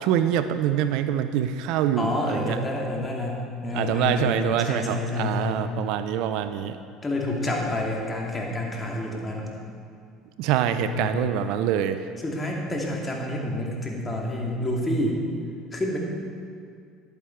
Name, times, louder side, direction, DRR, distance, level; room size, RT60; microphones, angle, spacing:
voice 1, 0.0-2.6 3.7-6.8 10.4-12.1, right 10 dB, 70° right, 10 dB, 0.5 m, -25 dB
voice 2, 2.0-5.6 7.0-9.5 10.8-11.3 12.2-15.2 15.7-16.0, left 1 dB, 25° left, -1 dB, 2.3 m, -28 dB
11.0 x 8.5 x 4.5 m, 2.2 s
hypercardioid pair, 80°, 0 cm